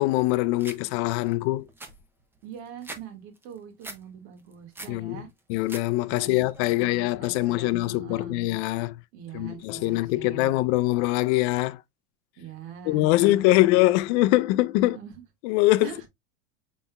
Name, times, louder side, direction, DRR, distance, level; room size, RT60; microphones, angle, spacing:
voice 1, 0.0-1.7 4.9-5.2 5.5-9.0 9.3-11.8 12.9-15.0 15.4-15.9, left 18 dB, 55° left, 0.5 m, -23 dB
sound 1, 0.6-0.8 1.3-1.4 1.6-3.0 3.4-4.0 4.4-5.0 5.4-5.8 6.2-6.7, right 2 dB, 5° right, 0.3 m, -42 dB
voice 2, 2.4-5.3 6.1-6.4 6.8-8.4 9.1-10.5 12.4-13.6 14.8-15.2 15.8-16.0, right 8 dB, 55° right, 1.8 m, -43 dB
5.4 x 4.1 x 2.2 m
supercardioid pair, 140°, 41 cm